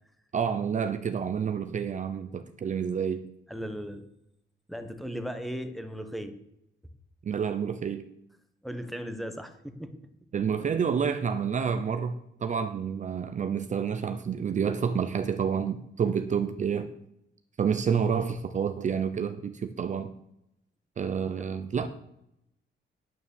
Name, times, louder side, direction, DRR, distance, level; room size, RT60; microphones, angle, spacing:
voice 1, 0.3-3.2 7.2-8.1 10.3-16.9 17.6-20.1 21.0-21.9, right 7 dB, 40° right, 10 dB, 0.7 m, -29 dB
voice 2, 3.5-4.0 4.7-6.4 8.6-9.9 21.1-21.5, equal, ahead, 7 dB, 1.1 m, -37 dB
9.2 x 9.1 x 7.1 m, 0.80 s
cardioid pair, 150°, 20 cm